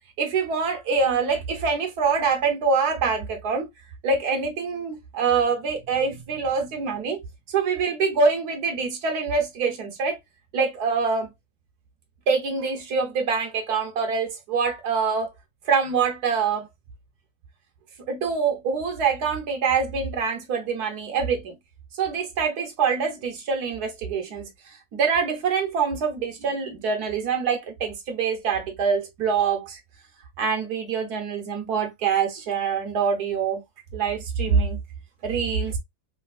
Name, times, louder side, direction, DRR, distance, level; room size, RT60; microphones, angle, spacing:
voice 1, 0.2-3.7 4.0-7.2 7.5-10.2 10.5-11.3 12.3-15.3 15.7-16.7 18.0-21.5 21.9-29.8 30.4-33.6 33.9-34.8 35.2-35.8, right 5 dB, 70° right, 1.3 m, -25 dB
3.3 x 2.8 x 2.3 m
omnidirectional pair, 1.8 m